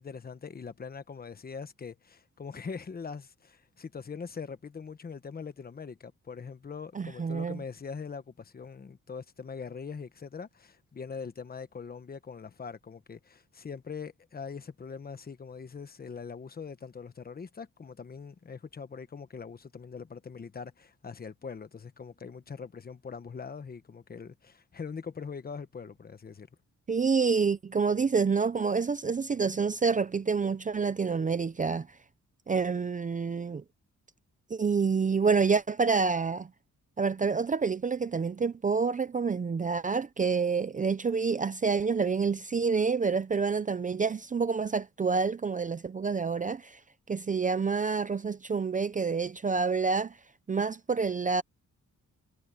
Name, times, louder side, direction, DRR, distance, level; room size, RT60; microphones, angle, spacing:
voice 1, 0.0-26.5, left 5 dB, 30° left, 1.1 m, -42 dB
voice 2, 6.9-7.6 26.9-31.9 32.5-33.6 34.5-36.5 37.0-46.8 47.1-50.2 50.5-51.4, right 5 dB, 25° right, 0.5 m, -28 dB
wide cardioid pair, 150°, 30 cm